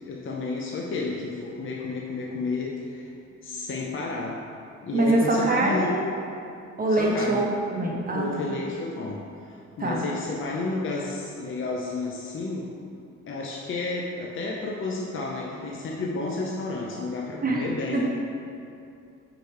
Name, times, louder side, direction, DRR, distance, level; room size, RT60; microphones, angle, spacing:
voice 1, 0.1-3.1 3.4-4.4 4.8-5.9 6.9-7.5 8.1-12.7 13.3-18.1, left 3 dB, 45° left, -2 dB, 0.7 m, -31 dB
voice 2, 4.9-6.0 6.8-8.3 9.8-10.0 17.4-17.7 17.9-18.0, right 2 dB, 30° right, -2 dB, 1.1 m, -24 dB
5.1 x 4.8 x 4.5 m, 2.6 s
cardioid pair, 90°, 30 cm